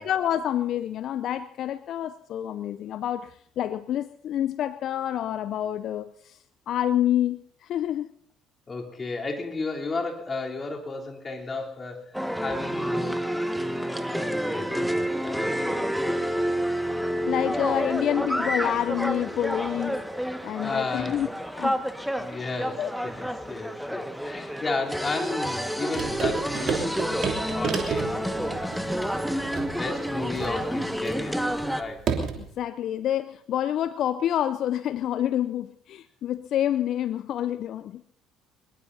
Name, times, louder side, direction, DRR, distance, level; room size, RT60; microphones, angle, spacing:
voice 1, 0.0-6.4 6.7-8.1 17.3-20.0 20.4-21.3 21.6-21.8 22.8-22.9 32.4-38.0, left 11 dB, 55° left, 14 dB, 0.5 m, -28 dB
voice 2, 8.7-13.3 13.8-14.9 15.2-15.9 17.8-18.0 20.6-21.2 22.1-29.0 29.5-31.5 31.7-32.1, left 3 dB, 30° left, 0 dB, 3.5 m, -34 dB
sound 1, 12.1-31.8, equal, ahead, 1.6 m, -29 dB
sound 2, 25.9-32.5, right 6 dB, 50° right, 3.0 m, -32 dB
23.0 x 21.5 x 2.8 m, 0.69 s
hypercardioid pair, 55°, 0 cm